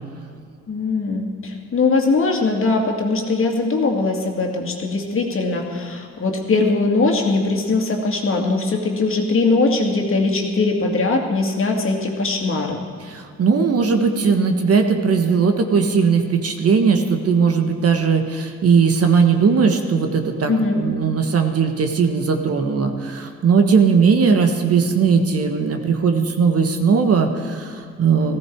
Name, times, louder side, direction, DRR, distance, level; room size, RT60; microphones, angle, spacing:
voice 1, 0.7-12.8 20.5-20.8, left 3 dB, 45° left, 1 dB, 2.2 m, -20 dB
voice 2, 13.1-28.4, right 5 dB, 50° right, 5 dB, 1.4 m, -18 dB
15.5 x 14.5 x 4.7 m, 2.3 s
cardioid pair, 90°, 30 cm